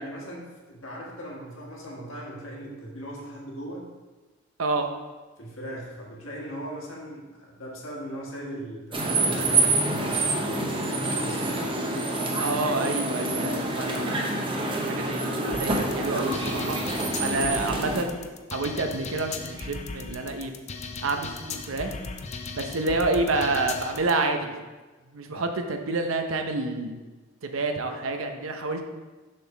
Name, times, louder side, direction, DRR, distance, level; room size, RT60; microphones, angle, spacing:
voice 1, 0.0-3.8 5.4-11.7, equal, 80° left, -3 dB, 1.6 m, -39 dB
sound 1, 8.9-18.0, right 2 dB, 25° right, 0.8 m, -27 dB
voice 2, 12.4-14.4 14.9-16.8 17.2-18.2 18.5-20.5 21.0-21.9 22.6-24.6 25.1-27.0 27.4-28.9, right 3 dB, 80° right, 5 dB, 0.7 m, -28 dB
sound 2, 15.5-24.1, left 4 dB, 35° left, 0.5 m, -37 dB
6.6 x 3.8 x 5.9 m, 1.3 s
head